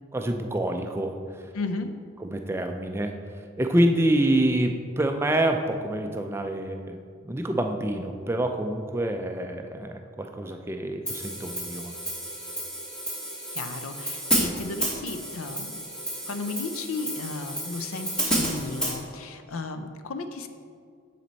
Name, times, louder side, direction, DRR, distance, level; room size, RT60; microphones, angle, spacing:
voice 1, 0.1-1.5 2.2-11.9, right 1 dB, 10° right, 5 dB, 0.3 m, -27 dB
voice 2, 1.5-2.0 13.5-15.9 16.3-20.5, left 3 dB, 90° left, 8 dB, 0.5 m, -34 dB
Hi-hat, 11.1-19.0, right 1 dB, 5° left, 1.1 m, -31 dB
9.3 x 4.3 x 4.0 m, 2.2 s
head